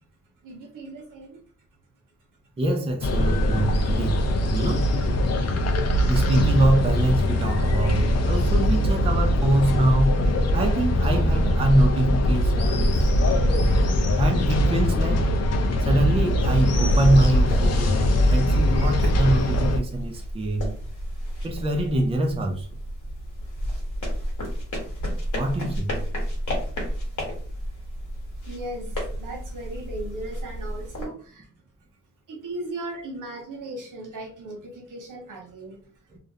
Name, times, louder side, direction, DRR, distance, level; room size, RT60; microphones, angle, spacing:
voice 1, 0.4-1.4 28.4-31.5 32.3-35.9, right 2 dB, 85° right, 0.8 m, -37 dB
voice 2, 2.6-4.2 4.5-4.9 6.1-10.2 10.5-13.1 14.2-15.3 15.8-20.7 21.4-22.7 25.3-26.0, right 1 dB, 20° right, 0.4 m, -24 dB
sound 1, 3.0-19.8, equal, 55° left, 0.4 m, -21 dB
sound 2, 17.3-31.1, equal, 75° left, 1.1 m, -31 dB
2.4 x 2.0 x 2.7 m
wide cardioid pair, 140°, 31 cm